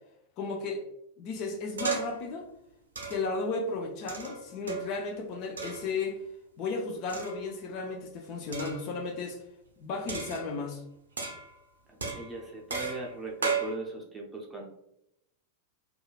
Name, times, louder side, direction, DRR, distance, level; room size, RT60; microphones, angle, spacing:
voice 1, 0.4-0.8 1.2-2.5 3.1-6.2 6.6-9.4 9.8-10.8, left 3 dB, 40° left, 3 dB, 0.4 m, -34 dB
sound 1, 1.8-2.3 2.9-3.4 4.1-5.0 5.6-5.9 7.1-7.6 8.5-8.9 10.1-10.7 11.2-11.6 12.0-13.7, right 5 dB, 70° right, 0.5 m, -35 dB
voice 2, 12.1-14.6, right 2 dB, 10° right, -2 dB, 0.7 m, -38 dB
3.0 x 2.3 x 2.3 m, 0.81 s
figure-of-eight pair, 90°, 0 cm